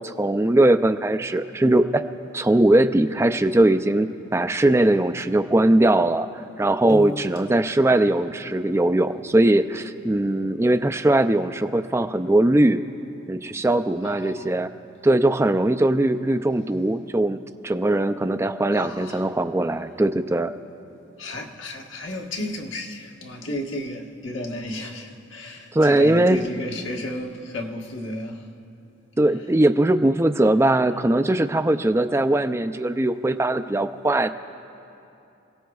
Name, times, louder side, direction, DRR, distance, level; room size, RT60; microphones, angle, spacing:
voice 1, 0.0-2.0 2.3-6.3 6.6-12.8 13.3-14.7 15.0-20.5 25.7-26.4 29.2-34.3, right 1 dB, 15° right, 0.3 m, -20 dB
Piano, 6.9-7.9, left 1 dB, 50° left, 0.5 m, -35 dB
voice 2, 14.0-14.5 18.7-19.3 21.2-28.5, left 1 dB, 75° left, 1.3 m, -33 dB
26.5 x 17.5 x 2.3 m
head